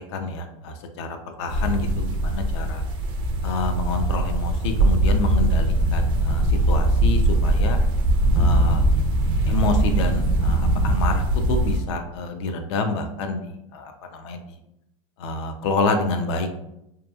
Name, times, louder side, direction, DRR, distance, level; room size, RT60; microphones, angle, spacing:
voice 1, 0.1-1.1 1.4-2.8 3.4-7.8 8.3-8.8 9.5-11.2 11.5-13.4 13.7-13.9 14.2-14.4 15.2-16.5, left 3 dB, 55° left, 6 dB, 0.4 m, -27 dB
sound 1, 1.5-11.8, right 1 dB, 30° right, 0.3 m, -21 dB
2.8 x 2.3 x 2.2 m, 0.83 s
supercardioid pair, 155°, 17 cm